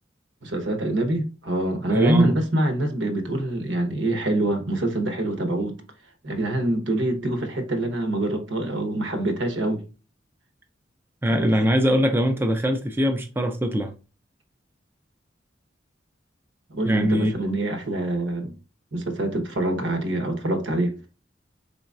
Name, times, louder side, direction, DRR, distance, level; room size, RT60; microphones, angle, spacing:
voice 1, 0.4-5.7 6.2-9.8 11.3-11.5 16.7-18.5 18.9-20.9, right 1 dB, 85° right, 1.0 m, -25 dB
voice 2, 1.9-2.4 11.2-13.9 16.8-17.3, equal, 10° right, 0.3 m, -22 dB
4.3 x 3.8 x 2.4 m
head